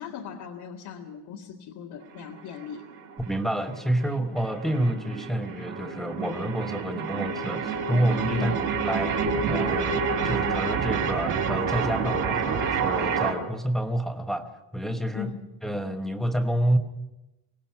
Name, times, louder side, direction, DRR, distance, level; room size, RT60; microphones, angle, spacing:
voice 1, 0.0-2.9 8.4-8.6 15.1-15.4, left 8 dB, 75° left, -3 dB, 2.1 m, -38 dB
sound 1, 2.0-13.3, right 5 dB, 45° right, 3.0 m, -28 dB
voice 2, 3.3-8.6 8.8-15.3 15.6-16.8, right 1 dB, ahead, 5 dB, 1.1 m, -28 dB
24.0 x 18.5 x 5.9 m, 0.94 s
cardioid pair, 180°, 42 cm